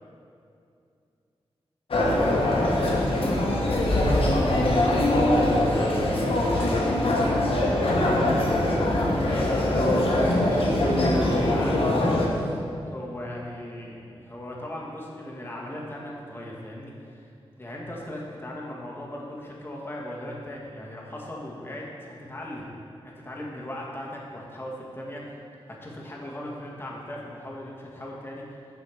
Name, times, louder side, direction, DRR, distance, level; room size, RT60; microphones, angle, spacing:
sound 1, 1.9-12.3, left 1 dB, 65° left, 1.2 m, -22 dB
voice 1, 2.7-4.6 5.1-8.7 9.1-12.6 12.8-17.3 17.6-22.8 23.0-25.4 25.7-28.4, left 1 dB, 20° left, -4 dB, 1.4 m, -38 dB
6.4 x 5.1 x 6.9 m, 2.5 s
wide cardioid pair, 100°, 10 cm